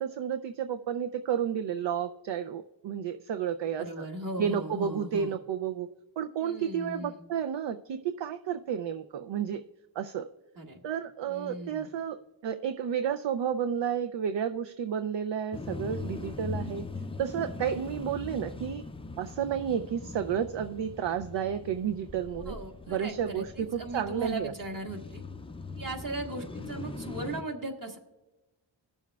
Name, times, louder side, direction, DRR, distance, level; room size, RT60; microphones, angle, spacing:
voice 1, 0.0-4.1 4.4-5.9 6.2-9.6 10.0-10.3 10.8-12.2 12.4-16.9 17.2-18.8 19.2-22.6 22.9-24.5, right 8 dB, 70° right, 8 dB, 0.5 m, -31 dB
voice 2, 3.8-5.3 6.4-7.2 10.5-10.8 11.3-11.9 22.4-25.2 25.8-28.0, right 1 dB, 45° right, 2 dB, 1.7 m, -38 dB
sound 1, 15.5-27.4, left 3 dB, 15° left, 0.4 m, -41 dB
20.0 x 7.0 x 2.3 m, 1.0 s
wide cardioid pair, 85°, 46 cm